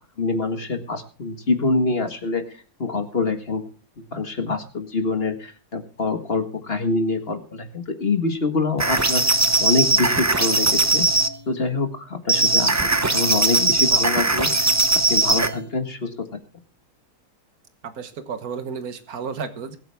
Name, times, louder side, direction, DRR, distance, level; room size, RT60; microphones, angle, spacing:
voice 1, 0.2-2.4 2.8-3.6 4.1-11.1 11.5-12.8 13.1-14.7 15.1-16.1, left 3 dB, 40° left, 6 dB, 1.9 m, -25 dB
sound 1, 8.8-11.3 12.3-15.6, right 3 dB, 25° right, 0.4 m, -19 dB
voice 2, 17.8-19.8, right 6 dB, 75° right, 10 dB, 1.7 m, -32 dB
22.0 x 8.7 x 3.5 m, 0.35 s
omnidirectional pair, 1.6 m